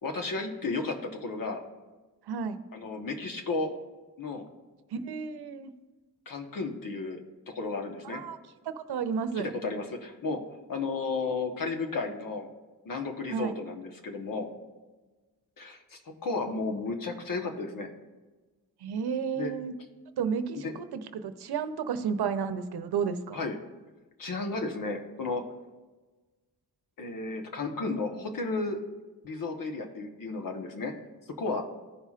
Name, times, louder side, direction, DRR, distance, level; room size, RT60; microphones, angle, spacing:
voice 1, 0.0-1.6 2.7-3.7 4.2-4.4 6.3-7.2 7.5-8.2 9.4-10.4 10.7-12.5 12.8-14.5 15.6-17.9 19.4-19.5 20.6-20.7 23.3-23.6 24.2-25.4 27.0-28.8 29.2-30.9 31.4-31.6, left 3 dB, 60° left, 4 dB, 1.2 m, -33 dB
voice 2, 2.3-2.6 4.9-5.7 8.0-8.4 8.6-9.5 13.3-13.5 18.8-19.7 20.2-23.4, right 6 dB, 85° right, 10 dB, 0.7 m, -32 dB
15.5 x 5.6 x 2.4 m, 1.3 s
wide cardioid pair, 110°, 38 cm